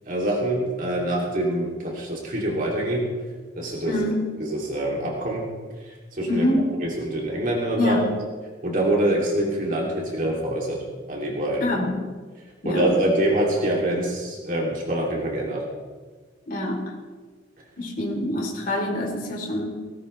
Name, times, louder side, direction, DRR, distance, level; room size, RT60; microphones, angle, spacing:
voice 1, 0.1-3.1 3.5-4.0 4.4-5.5 5.8-6.5 6.8-8.1 8.6-10.8 11.1-11.8 12.6-15.6, right 1 dB, 50° right, -2 dB, 3.1 m, -25 dB
voice 2, 3.8-4.3 6.3-6.7 7.7-8.0 11.6-12.0 12.6-13.1 16.5-16.9 17.8-19.7, left 1 dB, 50° left, 0 dB, 3.6 m, -25 dB
18.5 x 18.0 x 3.4 m, 1.4 s
head